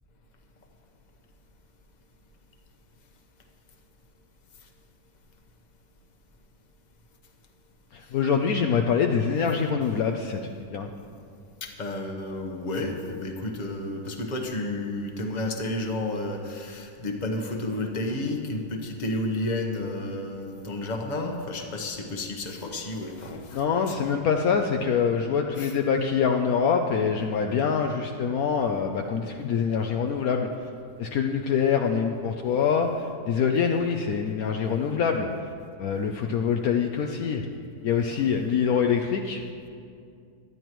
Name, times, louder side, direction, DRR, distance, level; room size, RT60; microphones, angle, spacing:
voice 1, 7.9-10.9 23.5-30.5 31.0-35.3 35.8-37.4 37.8-39.4, left 6 dB, 70° left, 3 dB, 1.0 m, -25 dB
voice 2, 11.6-24.1 25.6-25.7 38.1-38.3, left 2 dB, 30° left, 2 dB, 1.1 m, -31 dB
19.0 x 12.0 x 3.1 m, 2.4 s
omnidirectional pair, 1.7 m